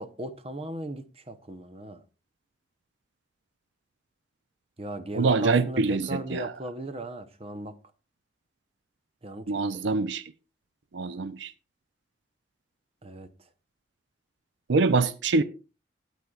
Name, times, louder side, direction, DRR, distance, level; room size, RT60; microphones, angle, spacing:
voice 1, 0.0-2.0 4.8-7.8 9.2-9.8 13.0-13.3, right 1 dB, 30° right, 0.8 m, -37 dB
voice 2, 5.1-6.5 9.5-10.2 10.9-11.5 14.7-15.4, right 3 dB, 70° right, 0.5 m, -24 dB
18.5 x 8.2 x 2.4 m
head